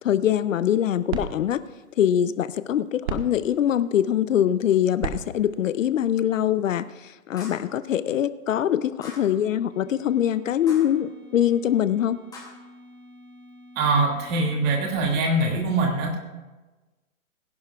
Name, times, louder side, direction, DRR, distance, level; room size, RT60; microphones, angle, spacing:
voice 1, 0.0-1.6 2.0-12.2, left 10 dB, 65° left, 14 dB, 0.6 m, -23 dB
sound 1, 0.5-6.9, right 7 dB, 50° right, 1.4 m, -38 dB
sound 2, 7.4-7.7 9.0-9.4 10.7-11.0 12.3-12.5, left 3 dB, 10° left, 2.4 m, -43 dB
sound 3, 9.7-15.1, left 1 dB, 65° right, 4.3 m, -49 dB
voice 2, 13.8-16.2, right 2 dB, 25° right, 1 dB, 2.1 m, -23 dB
21.5 x 11.0 x 2.4 m, 1.2 s
hypercardioid pair, 145°, 42 cm